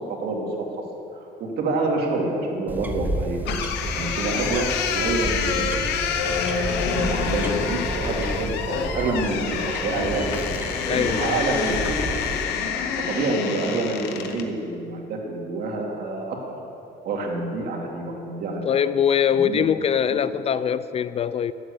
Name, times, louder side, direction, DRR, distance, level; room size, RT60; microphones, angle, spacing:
voice 1, 0.1-0.5 1.2-3.4 3.9-6.5 6.8-10.3 10.9-12.3 13.0-16.4 17.0-18.6 19.3-19.6 20.1-20.2, right 3 dB, 70° right, 2.3 m, -27 dB
sound 1, 2.7-12.4, right 1 dB, 10° right, 0.9 m, -32 dB
sound 2, 3.4-14.5, left 6 dB, 90° left, 0.9 m, -27 dB
voice 2, 10.8-11.4 18.6-21.5, left 8 dB, 35° left, 0.3 m, -22 dB
10.0 x 7.9 x 8.1 m
cardioid pair, 110°, 17 cm